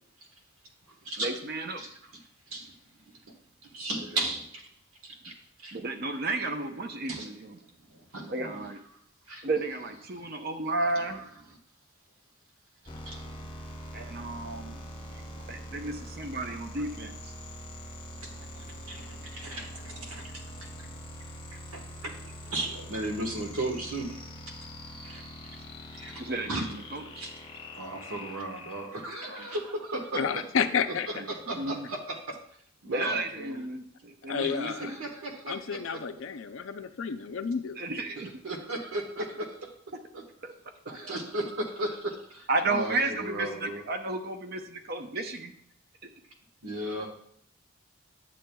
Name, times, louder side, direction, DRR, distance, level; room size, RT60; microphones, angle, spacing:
voice 1, 1.2-1.8 5.7-7.6 8.3-8.8 9.4-11.2 13.9-14.8 15.5-17.3 26.2-27.2 29.3-29.5 31.1-31.9 32.8-35.0 37.8-38.3 40.4-40.5 40.9-41.1 42.5-45.5, right 2 dB, 45° right, 6 dB, 0.6 m, -33 dB
voice 2, 3.7-4.6 5.0-5.3 5.6-5.8 7.1-7.3 7.9-8.7 9.3-9.4 11.1-11.3 12.8-13.4 14.7-15.7 18.1-21.0 21.5-24.2 25.0-25.2 25.9-26.2 26.5-26.7 27.2-27.3 27.7-30.2 30.6-30.7 31.3-32.4 32.8-33.6 34.5-36.0 38.2-39.5 40.9-43.8 46.6-47.1, right 1 dB, 85° right, 2 dB, 1.3 m, -36 dB
sound 1, 12.9-29.3, equal, 20° left, 0.8 m, -43 dB
voice 3, 30.1-31.1 34.3-34.9 35.5-37.8, left 6 dB, 65° left, 9 dB, 0.4 m, -30 dB
8.7 x 7.5 x 2.3 m, 0.66 s
head